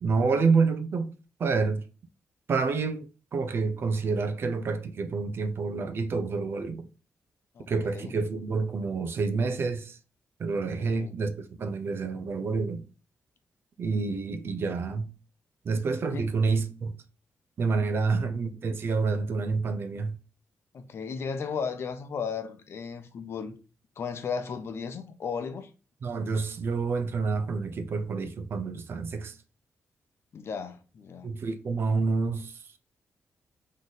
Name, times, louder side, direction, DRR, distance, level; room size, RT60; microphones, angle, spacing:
voice 1, 0.0-1.1 1.4-1.9 2.5-6.9 7.7-10.0 10.4-12.8 13.8-15.1 15.6-16.9 17.6-20.2 26.0-29.4 31.2-32.6, right 4 dB, 50° right, 0.6 m, -28 dB
voice 2, 7.5-8.1 10.8-11.1 16.1-16.3 17.9-18.1 20.7-23.5 24.0-25.7 30.3-31.3, left 6 dB, 55° left, 0.7 m, -35 dB
3.9 x 3.2 x 4.0 m
wide cardioid pair, 135°, 5 cm